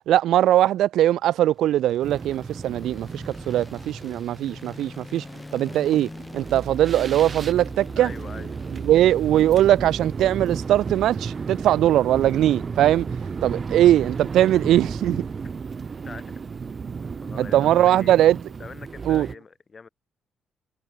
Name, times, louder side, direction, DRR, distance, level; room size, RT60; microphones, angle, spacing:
voice 1, 0.1-5.3 5.5-8.1 8.8-13.1 13.4-15.3 17.4-18.4 19.1-19.3, right 12 dB, 80° right, 0.3 m, -20 dB
sound 1, 1.3-15.5, left 2 dB, 15° left, 6.2 m, -46 dB
sound 2, 2.0-19.4, right 5 dB, 40° right, 0.8 m, -33 dB
voice 2, 8.0-8.6 13.6-13.7 16.0-16.4 17.2-18.2 18.6-19.9, left 5 dB, 35° left, 3.8 m, -42 dB
cardioid pair, 90°, 0 cm